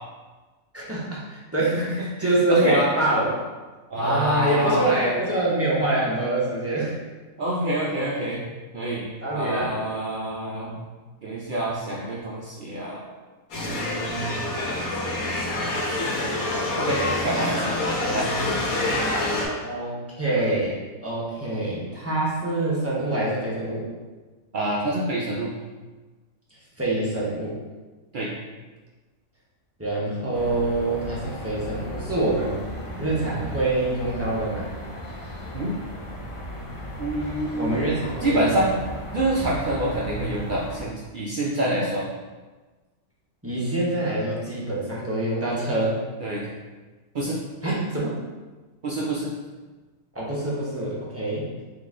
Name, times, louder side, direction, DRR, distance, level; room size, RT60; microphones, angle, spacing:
voice 1, 0.7-3.4 4.0-7.0 8.9-9.7 19.6-23.9 26.8-27.6 29.8-32.6 33.0-34.7 37.6-38.6 43.4-46.0 47.6-48.2 50.1-51.5, right 2 dB, 15° right, -7 dB, 0.7 m, -25 dB
voice 2, 1.7-2.9 3.9-5.0 7.4-8.4 8.7-9.0 9.3-10.8 11.2-13.1 13.6-14.4 16.8-17.8 18.1-18.3 24.5-25.5 28.1-28.3 35.5-35.8 37.0-38.8 39.1-42.1 46.2-46.5 47.1-47.4 48.8-49.3, right 1 dB, 80° right, -4 dB, 0.4 m, -27 dB
sound 1, 13.5-19.5, left 2 dB, 75° left, 1.3 m, -26 dB
sound 2, 30.3-40.8, equal, 55° left, 0.3 m, -36 dB
3.7 x 2.9 x 3.6 m, 1.3 s
omnidirectional pair, 1.5 m